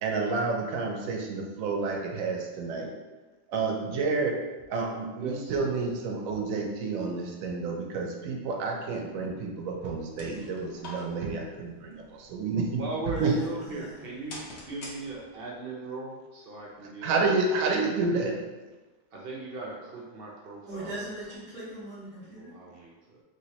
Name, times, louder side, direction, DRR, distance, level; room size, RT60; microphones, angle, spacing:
voice 1, 0.0-2.9 3.5-4.4 4.7-12.8 13.2-13.3 17.0-18.4, right 4 dB, 80° right, 1 dB, 1.0 m, -29 dB
voice 2, 5.2-5.5 12.4-17.4 19.1-21.1 21.6-21.7 22.2-23.2, right 3 dB, 55° right, -3 dB, 0.7 m, -39 dB
sound 1, 9.8-15.6, left 2 dB, 55° left, 0.9 m, -48 dB
voice 3, 13.1-14.0 20.7-22.5, right 1 dB, 5° left, -11 dB, 1.0 m, -40 dB
3.1 x 3.0 x 2.8 m, 1.2 s
omnidirectional pair, 1.4 m